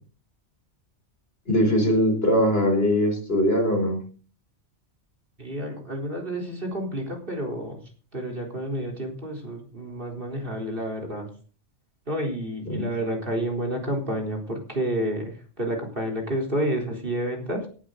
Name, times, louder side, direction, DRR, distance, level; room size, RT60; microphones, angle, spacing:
voice 1, 1.5-4.0 12.7-12.9, equal, 55° left, 3 dB, 4.3 m, -21 dB
voice 2, 5.4-7.8 8.1-11.3 12.1-17.7, right 1 dB, 45° right, 1 dB, 4.2 m, -30 dB
18.0 x 11.0 x 3.9 m, 0.39 s
omnidirectional pair, 1.3 m